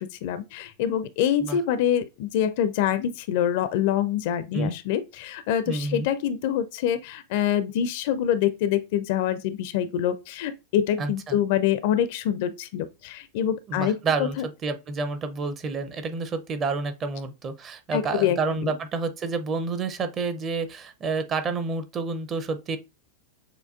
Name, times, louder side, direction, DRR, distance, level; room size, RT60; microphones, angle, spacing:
voice 1, 0.0-14.4 17.9-18.7, left 10 dB, 50° left, 0.4 m, -25 dB
voice 2, 5.7-6.1 11.0-11.4 13.7-14.4 14.6-22.8, right 4 dB, 25° right, 0.6 m, -29 dB
6.5 x 2.3 x 2.4 m
figure-of-eight pair, 90°, 0 cm